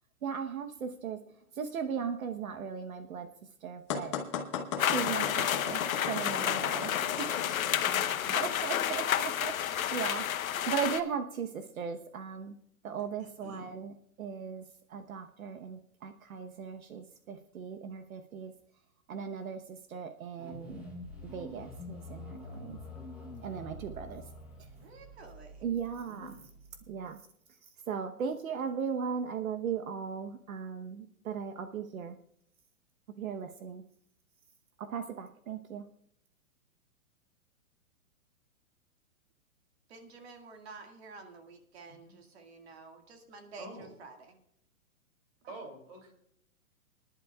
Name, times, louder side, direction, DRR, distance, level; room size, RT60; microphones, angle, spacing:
voice 1, 0.2-1.2 1.5-3.3 3.6-4.2 4.8-7.9 8.3-12.6 12.8-18.5 19.1-20.8 21.2-22.8 23.4-24.3 24.6-24.7 25.6-26.4 26.9-27.2 27.6-32.2 33.2-33.8 34.8-35.8, right 7 dB, 70° right, 7 dB, 1.1 m, -38 dB
sound 1, 3.9-8.1, left 7 dB, 20° left, 0.9 m, -36 dB
sound 2, 4.8-11.0, left 10 dB, 70° left, 0.9 m, -30 dB
voice 2, 7.7-8.4 13.2-13.6 26.1-26.5 41.9-42.2 43.6-43.9 45.5-46.1, right 1 dB, 20° right, 3 dB, 2.9 m, -47 dB
sound 3, 20.4-27.0, left 2 dB, 5° right, 1.0 m, -47 dB
voice 3, 24.8-25.7 39.9-44.4 45.4-45.6, right 3 dB, 45° right, 4 dB, 2.0 m, -50 dB
24.5 x 11.0 x 2.3 m, 0.71 s
hypercardioid pair, 175°, 43 cm